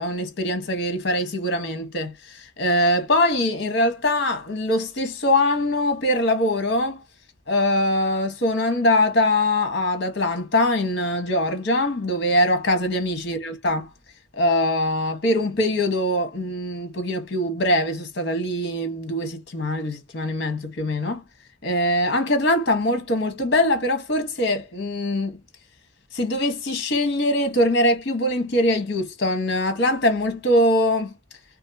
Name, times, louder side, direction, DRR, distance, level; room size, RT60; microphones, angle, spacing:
voice 1, 0.0-7.0 7.5-13.9 14.4-21.2 21.6-25.4 26.1-31.1, left 1 dB, 55° left, 1.0 m, -22 dB
2.7 x 2.5 x 2.6 m
head